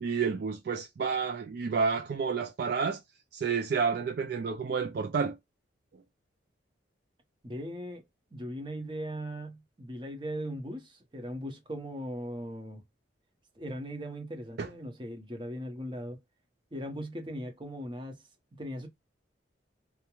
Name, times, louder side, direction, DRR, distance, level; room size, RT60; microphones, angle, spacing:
voice 1, 0.0-3.0 3.3-5.4 14.6-14.7, right 5 dB, 55° right, 0.3 m, -30 dB
voice 2, 7.4-8.0 8.3-12.8 13.6-16.2 16.7-18.2 18.6-18.9, equal, 25° right, 0.7 m, -39 dB
2.3 x 2.1 x 2.9 m
head